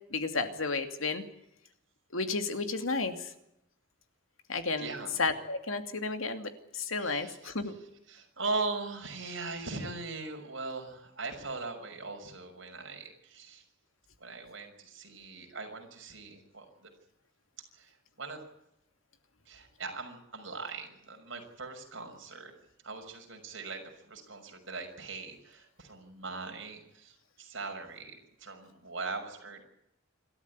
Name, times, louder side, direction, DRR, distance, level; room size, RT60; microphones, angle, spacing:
voice 1, 0.1-1.2 2.1-3.1 4.5-4.9 5.2-7.7, left 3 dB, 90° left, 7 dB, 2.6 m, -32 dB
voice 2, 4.8-5.1 7.0-7.8 8.1-13.6 14.2-16.9 17.7-18.4 19.5-22.5 22.8-29.6, right 3 dB, 65° right, 3 dB, 6.1 m, -40 dB
27.0 x 13.5 x 9.8 m, 0.82 s
head